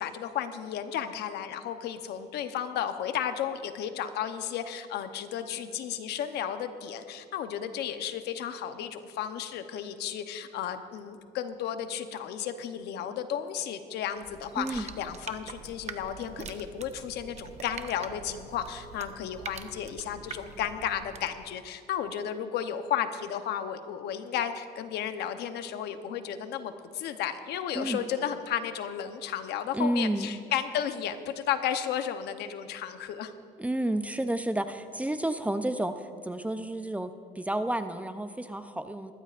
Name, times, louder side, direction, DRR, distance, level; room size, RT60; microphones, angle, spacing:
voice 1, 0.0-33.3, left 9 dB, 75° left, 9 dB, 0.9 m, -33 dB
sound 1, 14.2-21.4, right 6 dB, 40° right, 0.8 m, -44 dB
voice 2, 14.6-14.9 27.7-28.1 29.7-30.4 33.6-39.1, right 1 dB, 10° right, 9 dB, 0.5 m, -31 dB
21.0 x 14.5 x 2.5 m, 2.3 s
cardioid pair, 110°, 17 cm